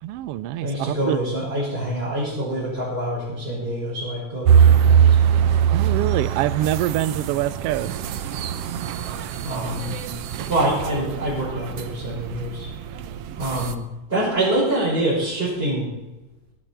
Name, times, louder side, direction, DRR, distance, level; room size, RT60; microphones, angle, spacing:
voice 1, 0.0-1.2 5.7-7.9 13.8-13.9, right 13 dB, 85° right, 15 dB, 1.3 m, -25 dB
voice 2, 0.6-5.2 9.4-9.9 10.5-12.7 13.4-13.8 14.1-15.9, right 1 dB, 20° right, -11 dB, 6.4 m, -25 dB
sound 1, 4.4-13.7, right 8 dB, 70° right, 1.6 m, -22 dB
19.0 x 11.0 x 4.5 m, 1.0 s
omnidirectional pair, 3.3 m